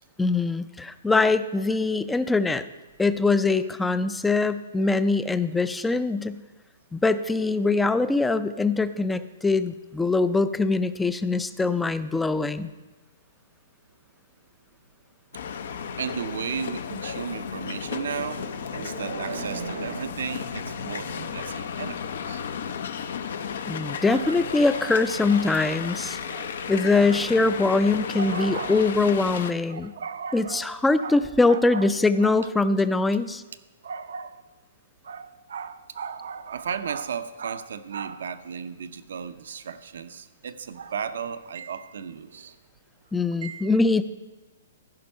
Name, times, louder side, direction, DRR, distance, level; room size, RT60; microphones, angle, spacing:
voice 1, 0.2-2.6 3.0-6.4 6.9-12.7 23.7-26.2 26.7-29.9 30.3-33.4 43.1-44.0, left 3 dB, 5° left, 13 dB, 0.4 m, -23 dB
sound 1, 15.3-29.5, left 7 dB, 70° left, 0.7 m, -34 dB
voice 2, 16.0-22.4 24.1-25.0 25.3-26.0 26.3-26.5 27.1-27.2 28.1-29.1 29.7-30.7 31.0-31.2 31.5-31.9 32.2-32.4 33.8-34.4 35.0-42.6 43.4-43.7, right 6 dB, 75° right, 10 dB, 0.7 m, -35 dB
15.5 x 5.2 x 5.5 m, 1.1 s
hypercardioid pair, 145°, 0 cm